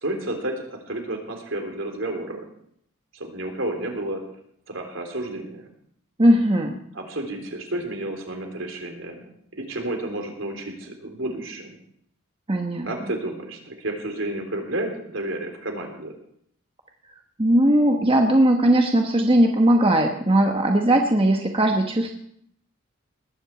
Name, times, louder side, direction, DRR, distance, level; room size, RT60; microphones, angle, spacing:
voice 1, 0.0-2.5 3.1-4.2 4.7-5.7 6.9-11.8 12.8-16.1, right 1 dB, 65° right, 4 dB, 3.6 m, -31 dB
voice 2, 6.2-6.8 12.5-12.9 17.4-22.1, right 1 dB, 25° right, 3 dB, 1.2 m, -19 dB
19.5 x 8.0 x 8.1 m, 0.69 s
head